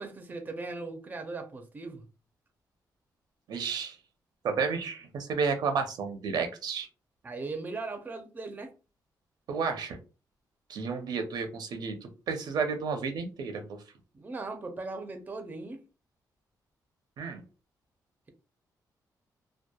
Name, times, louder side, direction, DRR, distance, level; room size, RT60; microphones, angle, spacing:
voice 1, 0.0-2.0 7.2-8.7 14.1-15.8, right 3 dB, 25° right, 0.4 m, -38 dB
voice 2, 3.5-4.0 4.4-6.9 9.5-10.0 10.7-13.6 17.2-17.4, right 5 dB, 70° right, 0.5 m, -31 dB
2.8 x 2.2 x 2.2 m
cardioid pair, 125°, 7 cm